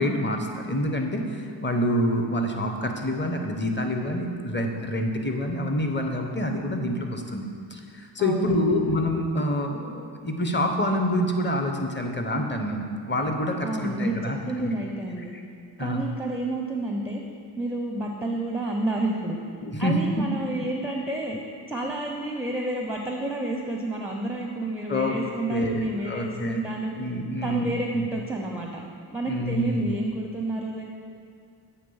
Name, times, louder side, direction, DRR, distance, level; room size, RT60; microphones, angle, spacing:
voice 1, 0.0-14.8 15.8-16.0 19.6-20.1 24.9-25.2 25.5-26.6 27.0-28.1 29.3-30.0, equal, 25° left, 4 dB, 0.8 m, -27 dB
voice 2, 8.2-8.8 13.6-15.3 15.8-17.2 17.6-19.4 19.8-21.4 21.7-26.9 27.4-28.8 29.1-30.8, right 2 dB, 5° right, 1 dB, 0.6 m, -30 dB
8.0 x 3.1 x 5.5 m, 2.3 s
cardioid pair, 45°, 45 cm